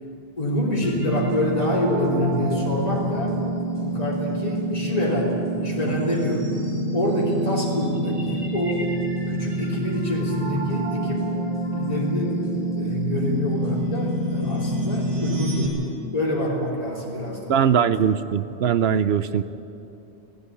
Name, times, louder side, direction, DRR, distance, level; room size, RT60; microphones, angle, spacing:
voice 1, 0.4-3.4 3.8-6.5 6.9-8.9 9.3-11.3 11.7-12.5 12.7-15.8 16.1-17.9, left 1 dB, 35° left, -4 dB, 3.4 m, -26 dB
sound 1, 0.8-15.7, right 1 dB, 30° right, 3.5 m, -27 dB
voice 2, 17.5-19.4, right 8 dB, 70° right, 13 dB, 0.9 m, -21 dB
16.5 x 16.5 x 9.7 m, 2.7 s
omnidirectional pair, 1.1 m